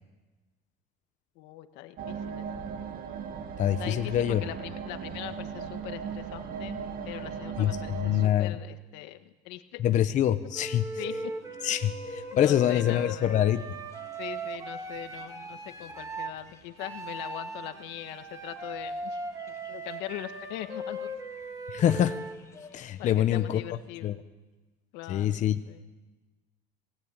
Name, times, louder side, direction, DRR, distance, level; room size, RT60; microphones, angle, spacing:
voice 1, 1.3-2.6 3.8-9.8 11.0-11.3 12.3-13.3 14.2-19.2 19.7-21.1 23.0-24.1 24.9-25.8, left 15 dB, 85° left, 9 dB, 1.6 m, -41 dB
sound 1, 2.0-8.3, right 7 dB, 55° right, 1.9 m, -37 dB
voice 2, 3.6-4.4 7.6-8.6 9.8-10.8 11.6-13.6 21.7-22.2 22.7-23.6 24.0-24.1 25.1-25.6, left 11 dB, 45° left, 9 dB, 1.0 m, -25 dB
Wind instrument woodwind instrument, 10.5-16.4 16.8-22.4, right 1 dB, 20° right, 2.9 m, -38 dB
sound 2, 11.0-23.8, left 3 dB, 15° left, 3.2 m, -51 dB
26.0 x 18.0 x 8.9 m, 1.2 s
cardioid pair, 125°, 18 cm